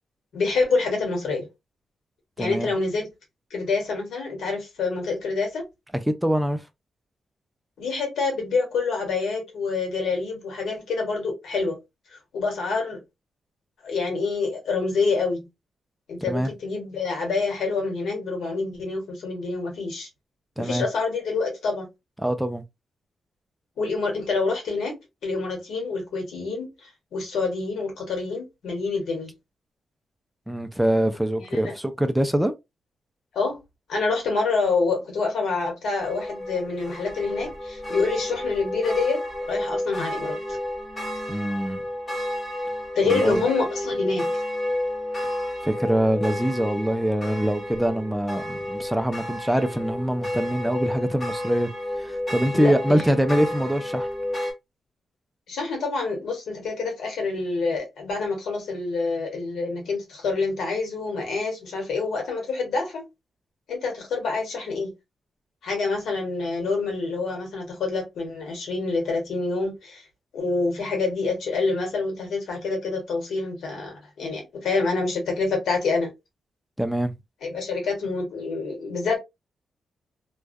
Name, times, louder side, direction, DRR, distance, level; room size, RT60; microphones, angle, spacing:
voice 1, 0.3-1.4 2.4-3.1 3.5-5.6 7.8-11.8 12.3-13.0 13.8-15.5 16.1-20.1 20.6-21.9 23.8-25.0 25.2-29.3 31.4-31.7 33.3-33.6 33.9-39.2 39.5-40.6 42.9-44.4 52.5-53.2 55.5-63.0 63.7-64.9 65.6-70.0 70.3-76.1 77.4-79.2, left 4 dB, 90° left, 1.2 m, -27 dB
voice 2, 2.4-2.7 6.1-6.6 16.3-16.5 20.6-20.8 22.2-22.6 30.5-32.5 41.3-41.8 43.1-43.4 45.6-51.7 52.0-54.1 76.8-77.1, equal, 5° right, 0.3 m, -24 dB
sound 1, 36.0-54.5, left 1 dB, 30° left, 1.1 m, -31 dB
2.2 x 2.2 x 2.5 m
cardioid pair, 105°, 0 cm